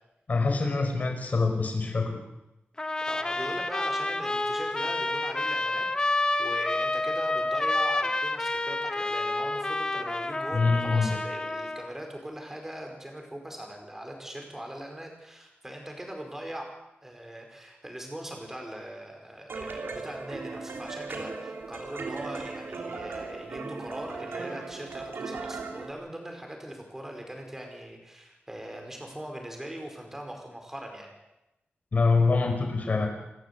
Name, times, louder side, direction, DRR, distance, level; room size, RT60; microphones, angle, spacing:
voice 1, 0.3-2.2 10.5-11.1 31.9-33.1, left 4 dB, 40° left, 4 dB, 4.8 m, -25 dB
Trumpet, 2.8-11.9, left 2 dB, 20° left, 1.2 m, -29 dB
voice 2, 3.0-5.9 6.4-31.1, right 1 dB, 10° right, 2 dB, 4.9 m, -40 dB
sound 1, 19.5-25.9, right 4 dB, 70° right, 3.1 m, -37 dB
27.5 x 14.0 x 8.4 m, 0.94 s
wide cardioid pair, 180°, 4 cm